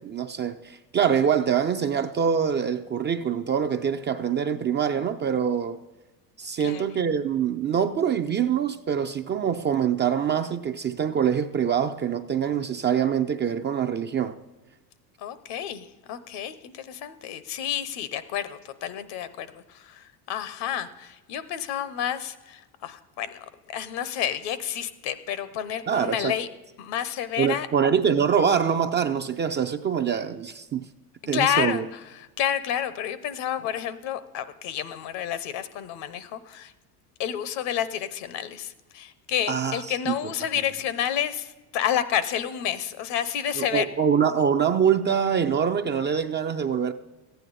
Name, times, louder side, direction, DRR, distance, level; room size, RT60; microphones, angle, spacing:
voice 1, 0.0-5.8 6.4-14.4 25.9-26.3 27.4-30.9 31.3-31.8 39.5-40.1 43.6-46.9, right 7 dB, 25° right, 0.4 m, -24 dB
voice 2, 15.2-26.5 26.8-27.7 31.3-31.8 32.1-36.7 37.2-43.9, left 10 dB, 60° left, 0.9 m, -30 dB
14.5 x 9.2 x 4.1 m
hypercardioid pair, 90°, 47 cm